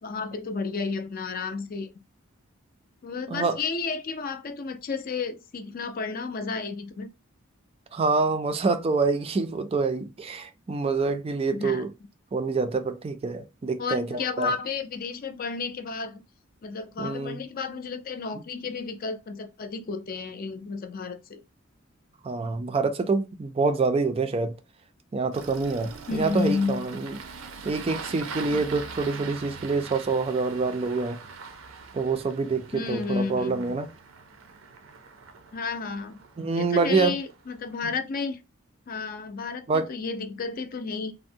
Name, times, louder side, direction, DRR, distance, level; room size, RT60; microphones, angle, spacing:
voice 1, 0.0-1.9 3.0-7.1 11.5-11.8 13.8-16.2 16.6-21.4 26.1-26.8 28.5-28.6 32.7-33.8 35.5-36.2 36.5-38.4 38.9-41.1, left 4 dB, 45° left, 0.4 m, -32 dB
voice 2, 7.9-11.9 12.3-14.5 17.0-17.4 22.2-24.6 25.1-27.2 27.6-31.2 31.9-33.9 36.4-37.1 39.7-39.9, right 4 dB, 30° right, 0.3 m, -26 dB
Engine starting, 25.3-37.7, right 5 dB, 90° right, 0.5 m, -42 dB
3.5 x 2.0 x 2.6 m
head